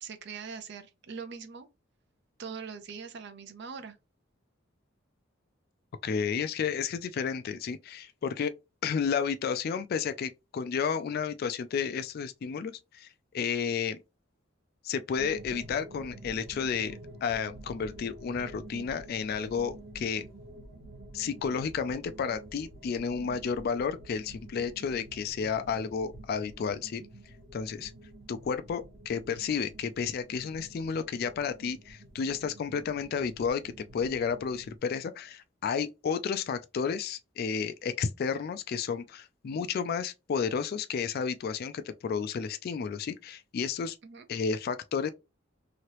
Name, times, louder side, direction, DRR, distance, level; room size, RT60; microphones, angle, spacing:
voice 1, 0.0-1.7 2.4-4.0 44.0-44.3, right 5 dB, 60° right, 0.6 m, -42 dB
voice 2, 6.0-8.5 8.8-13.1 13.3-14.0 14.8-20.3 21.1-27.0 27.5-27.9 28.3-44.0 44.3-45.1, left 6 dB, 50° left, 0.3 m, -32 dB
sound 1, 15.1-34.8, right 1 dB, 80° right, 1.3 m, -49 dB
2.9 x 2.8 x 3.0 m
head